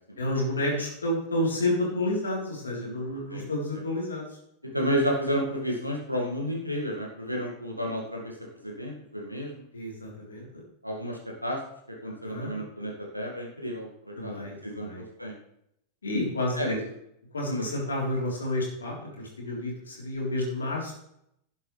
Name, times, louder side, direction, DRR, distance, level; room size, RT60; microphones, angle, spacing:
voice 1, 0.2-4.2 9.7-10.5 12.2-12.5 14.2-15.0 16.0-16.8 17.3-20.9, left 1 dB, 70° left, -2 dB, 3.8 m, -30 dB
voice 2, 4.7-8.3 8.6-9.6 10.8-11.6 11.9-15.3 16.5-16.8 17.5-17.7, equal, 90° right, 0 dB, 2.1 m, -31 dB
11.5 x 9.9 x 3.4 m, 0.75 s
figure-of-eight pair, 90°, 0 cm